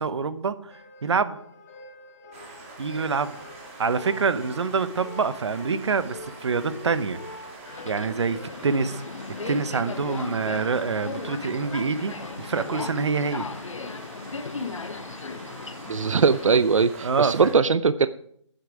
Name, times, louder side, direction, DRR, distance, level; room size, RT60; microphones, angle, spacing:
voice 1, 0.0-1.4 2.8-3.4 3.8-7.2 7.8-9.0 9.5-12.1 12.4-13.5 17.0-17.5, right 5 dB, 60° right, 13 dB, 1.0 m, -26 dB
sound 1, 0.7-13.0, left 2 dB, 30° left, 1.9 m, -45 dB
sound 2, 2.3-17.5, right 3 dB, 25° right, 2.3 m, -45 dB
Subway metro underground, 7.7-16.6, left 4 dB, 80° left, 0.9 m, -36 dB
voice 2, 15.9-18.1, right 5 dB, 90° right, 15 dB, 0.5 m, -20 dB
10.0 x 8.9 x 4.8 m, 0.67 s
hypercardioid pair, 160°, 16 cm